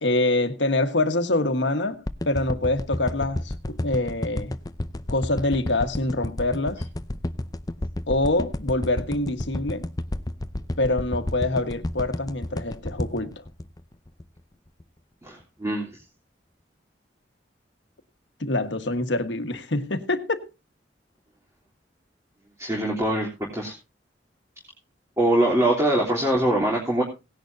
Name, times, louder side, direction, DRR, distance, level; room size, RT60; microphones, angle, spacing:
voice 1, 0.0-2.0 2.2-4.5 5.1-6.8 8.1-9.9 10.8-13.4 18.4-20.5, left 2 dB, 85° left, 1.5 m, -25 dB
sound 1, 2.1-14.4 14.8-14.9, left 1 dB, 20° left, 0.6 m, -30 dB
voice 2, 15.2-15.9 22.6-23.7 25.2-27.0, right 1 dB, 15° right, 3.3 m, -23 dB
18.0 x 10.5 x 2.7 m
head